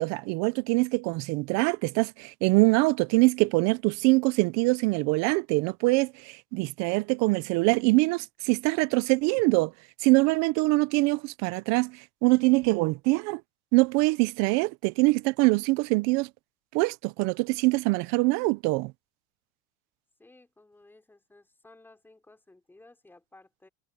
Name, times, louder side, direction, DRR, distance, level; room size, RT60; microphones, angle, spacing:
voice 1, 0.0-9.7 10.0-13.4 13.7-16.3 16.7-18.9, right 25 dB, 55° right, 0.7 m, -24 dB
voice 2, 20.2-23.7, left 2 dB, 5° left, 4.7 m, -56 dB
cardioid pair, 155°, 33 cm